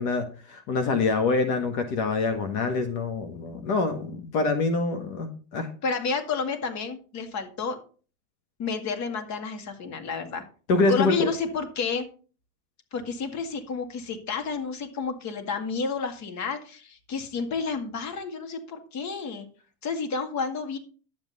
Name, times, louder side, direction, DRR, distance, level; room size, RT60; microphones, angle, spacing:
voice 1, 0.0-5.7 10.7-11.3, left 3 dB, 60° left, 6 dB, 1.7 m, -25 dB
voice 2, 5.8-7.8 8.6-10.4 10.9-12.1 12.9-19.5 19.8-20.8, left 5 dB, 40° left, 7 dB, 2.0 m, -30 dB
11.5 x 7.8 x 4.1 m, 0.38 s
supercardioid pair, 125°, 43 cm